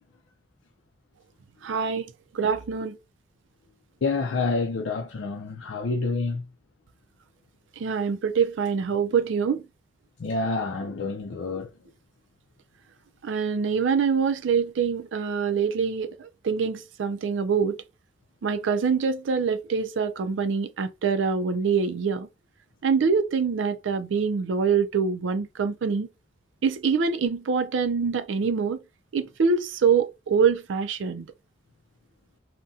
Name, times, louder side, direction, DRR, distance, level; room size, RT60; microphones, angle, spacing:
voice 1, 1.6-2.1 2.3-3.0 7.8-9.6 13.2-17.8 18.4-22.3 22.8-26.1 26.6-28.8 29.1-31.3, right 6 dB, 80° right, 0.4 m, -25 dB
voice 2, 4.0-6.4 10.2-11.7, left 3 dB, 75° left, 0.4 m, -28 dB
3.6 x 2.1 x 2.6 m
head